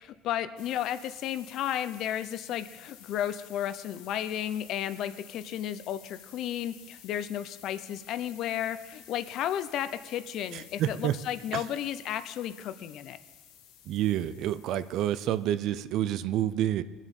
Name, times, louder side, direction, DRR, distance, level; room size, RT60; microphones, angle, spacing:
voice 1, 0.0-13.2, left 11 dB, 50° left, 13 dB, 0.7 m, -33 dB
sound 1, 0.6-15.7, left 10 dB, 70° left, 1.2 m, -53 dB
voice 2, 10.5-11.2 11.5-11.6 13.9-16.8, right 12 dB, 55° right, 14 dB, 0.5 m, -28 dB
21.0 x 7.4 x 5.4 m, 1.2 s
cardioid pair, 145°, 0 cm